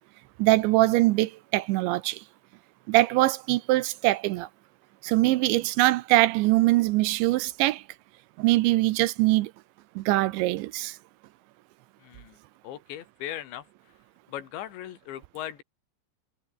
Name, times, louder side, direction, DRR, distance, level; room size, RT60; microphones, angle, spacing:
voice 1, 0.4-2.2 2.9-4.5 5.0-7.8 8.4-9.5 10.0-11.0, right 18 dB, 80° right, 2.9 m, -23 dB
voice 2, 12.0-12.4 12.6-13.7 14.3-15.6, left 12 dB, 75° left, 4.0 m, -38 dB
omnidirectional pair, 5.4 m